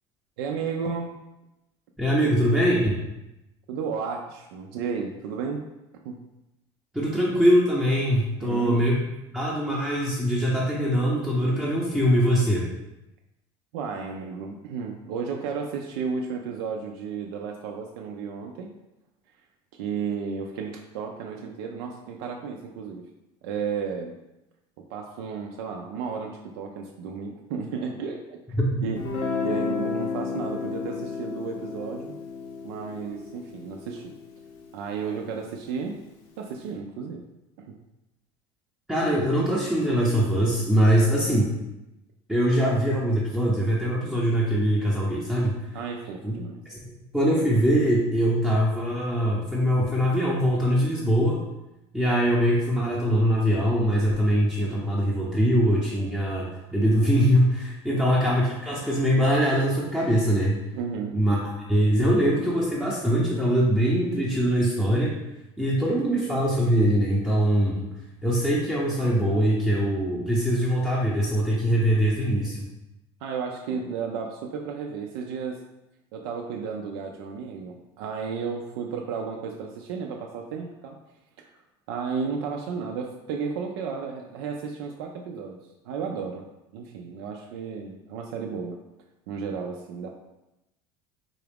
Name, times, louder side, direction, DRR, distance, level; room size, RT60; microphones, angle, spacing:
voice 1, 0.4-1.1 3.7-5.7 6.0-6.2 8.4-8.9 13.7-18.7 19.7-23.1 23.4-24.2 24.8-29.0 29.4-32.2 32.6-34.1 34.7-36.0 36.4-37.3 37.6-37.8 45.7-46.6 57.9-58.1 60.7-61.2 73.2-75.6 76.1-81.0 81.4-81.5 81.9-85.6 85.8-86.4 86.7-88.8 89.3-90.1, right 5 dB, 80° right, 1 dB, 0.4 m, -33 dB
voice 2, 2.0-3.0 6.9-9.0 9.3-12.7 28.6-28.8 38.9-41.5 42.3-45.6 46.2-46.3 46.7-46.8 47.1-51.4 51.9-60.6 61.1-61.4 61.7-65.2 65.6-67.9 68.2-72.7, equal, 5° right, -6 dB, 0.6 m, -22 dB
Guitar, 29.0-34.7, left 5 dB, 55° left, 0.7 m, -32 dB
3.8 x 2.4 x 3.4 m, 0.93 s
supercardioid pair, 120°, 13 cm